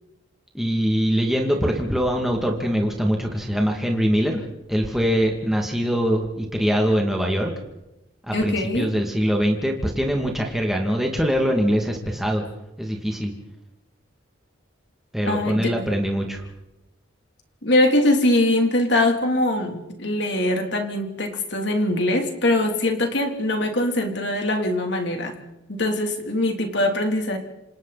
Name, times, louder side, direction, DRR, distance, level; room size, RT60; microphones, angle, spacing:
voice 1, 0.5-4.4 4.7-7.5 8.3-12.4 12.8-13.3 15.1-16.4, equal, ahead, 0 dB, 2.4 m, -23 dB
voice 2, 8.3-8.9 15.3-15.9 17.6-25.4 25.7-27.4, left 1 dB, 60° left, 3 dB, 3.3 m, -22 dB
28.0 x 27.5 x 4.2 m, 0.94 s
head